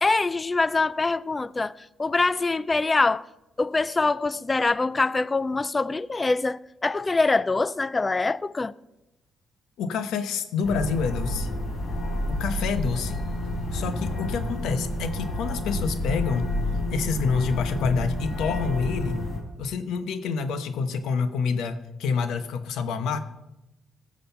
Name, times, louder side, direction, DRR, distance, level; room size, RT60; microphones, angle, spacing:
voice 1, 0.0-3.3 3.6-8.7, left 3 dB, 25° left, 0.4 m, -24 dB
voice 2, 9.8-11.5 12.3-13.2 13.7-16.5 16.9-19.2 19.6-23.2, left 5 dB, 85° left, 1.0 m, -27 dB
sound 1, 10.6-19.4, left 1 dB, 55° left, 3.6 m, -29 dB
16.5 x 6.4 x 5.7 m
cardioid pair, 90°, 0 cm